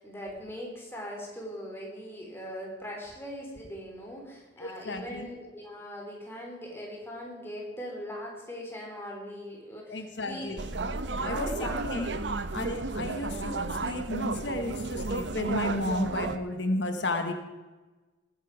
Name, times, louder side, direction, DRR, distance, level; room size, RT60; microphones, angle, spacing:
voice 1, 0.0-10.5 11.1-11.8 12.1-12.3, equal, 15° left, -2 dB, 3.7 m, -40 dB
voice 2, 4.6-5.3 9.9-10.6 11.2-12.1 12.5-17.3, left 2 dB, 85° left, 7 dB, 1.3 m, -33 dB
sound 1, 10.6-16.4, right 3 dB, 80° right, 0.8 m, -33 dB
19.0 x 9.9 x 4.8 m, 1.2 s
head